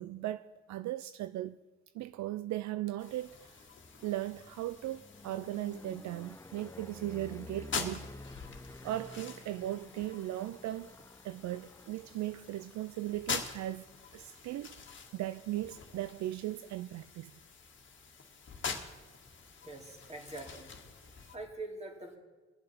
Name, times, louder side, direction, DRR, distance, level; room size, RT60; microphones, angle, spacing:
voice 1, 0.0-1.6 1.9-3.7 4.0-8.1 8.8-10.9 11.2-13.9 14.1-14.8 15.1-17.4, right 14 dB, 70° right, 0.4 m, -38 dB
sound 1, 3.0-21.4, left 5 dB, 40° left, 1.7 m, -45 dB
sound 2, 3.0-17.0 17.4-17.9 18.1-18.2 18.5-21.6, left 2 dB, 10° left, 0.6 m, -53 dB
voice 2, 19.6-20.7 21.1-22.2, right 2 dB, 20° right, 3.0 m, -44 dB
22.0 x 7.6 x 5.8 m
cardioid pair, 90°, 30 cm